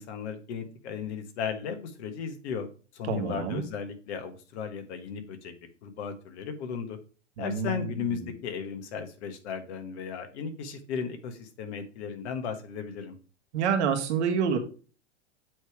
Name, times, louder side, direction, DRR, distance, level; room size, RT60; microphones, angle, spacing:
voice 1, 0.0-2.7 2.9-5.5 5.8-7.0 7.4-13.2, left 6 dB, 60° left, 8 dB, 1.5 m, -35 dB
voice 2, 3.1-3.6 7.4-8.3 13.5-14.6, right 6 dB, 65° right, 6 dB, 1.5 m, -28 dB
8.0 x 3.4 x 4.6 m, 0.36 s
hypercardioid pair, 110°, 37 cm